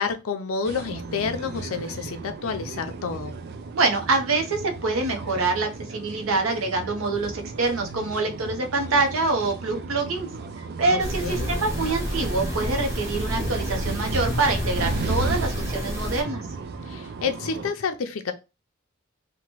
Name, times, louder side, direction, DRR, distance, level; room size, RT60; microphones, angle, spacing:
voice 1, 0.0-3.4 10.9-11.5 16.9-18.3, left 5 dB, 80° left, 0.5 m, -29 dB
sound 1, 0.6-17.7, right 3 dB, 55° right, 0.4 m, -35 dB
voice 2, 3.7-10.3 10.8-16.4, right 3 dB, 80° right, 0.7 m, -25 dB
sound 2, 11.0-16.2, equal, 15° right, 0.8 m, -29 dB
2.9 x 2.2 x 2.9 m
head